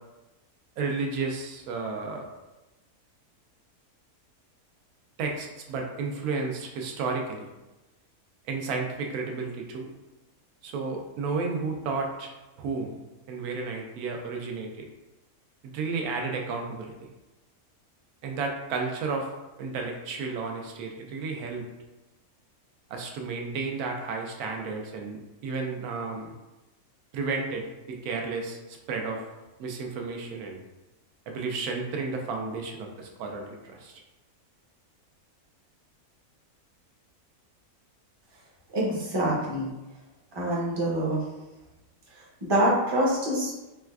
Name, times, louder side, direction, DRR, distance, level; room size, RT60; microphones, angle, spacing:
voice 1, 0.8-2.2 5.2-7.5 8.5-9.9 10.6-12.3 12.6-13.0 13.3-14.7 15.6-16.9 18.2-19.3 19.6-21.6 22.9-26.3 27.1-29.2 29.6-30.6 31.3-34.0, right 4 dB, 80° right, 2 dB, 1.0 m, -32 dB
voice 2, 38.7-39.7 40.3-41.2 42.4-43.5, right 1 dB, 30° right, -5 dB, 0.4 m, -25 dB
4.2 x 2.3 x 2.3 m, 1.0 s
omnidirectional pair, 1.6 m